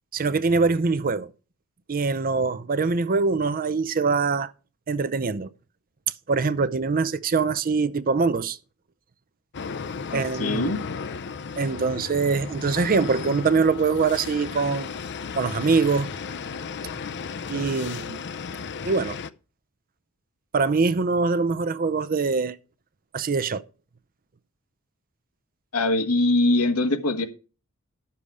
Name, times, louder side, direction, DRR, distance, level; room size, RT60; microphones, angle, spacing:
voice 1, 0.1-1.3 1.9-4.5 4.9-5.5 6.3-8.6 10.1-10.8 11.6-14.9 15.4-16.1 17.5-18.2 18.9-19.2 20.5-22.6 23.1-23.6, right 4 dB, 40° right, 0.6 m, -23 dB
sound 1, 9.5-19.3, left 5 dB, 50° left, 0.5 m, -34 dB
voice 2, 10.1-10.8 25.7-27.2, left 2 dB, 85° left, 1.6 m, -22 dB
11.5 x 6.9 x 4.9 m
head